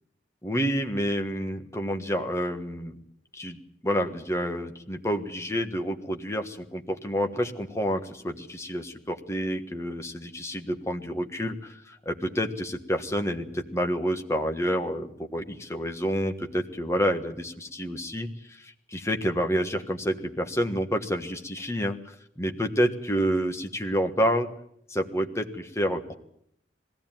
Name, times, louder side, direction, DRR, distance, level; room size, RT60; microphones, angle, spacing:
voice 1, 0.4-2.9 3.3-24.5 24.9-26.1, equal, 15° left, 5 dB, 1.4 m, -29 dB
20.5 x 15.5 x 9.1 m, 0.73 s
head